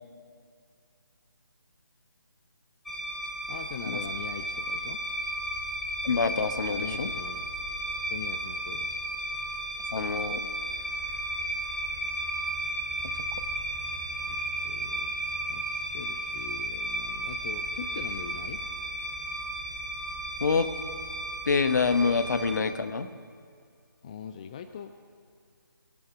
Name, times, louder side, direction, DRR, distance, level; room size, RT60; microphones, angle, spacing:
sound 1, 2.9-22.6, right 1 dB, ahead, 0.8 m, -34 dB
voice 1, 3.5-5.0 6.7-7.5 8.1-9.0 14.3-14.4 14.6-15.1 15.5-18.6 24.0-24.9, left 7 dB, 15° left, 9 dB, 0.3 m, -41 dB
voice 2, 6.0-7.1 9.9-10.5 20.4-20.7 21.5-23.1, left 5 dB, 50° left, 11 dB, 1.0 m, -26 dB
25.0 x 8.6 x 6.2 m, 2.2 s
figure-of-eight pair, 150°, 12 cm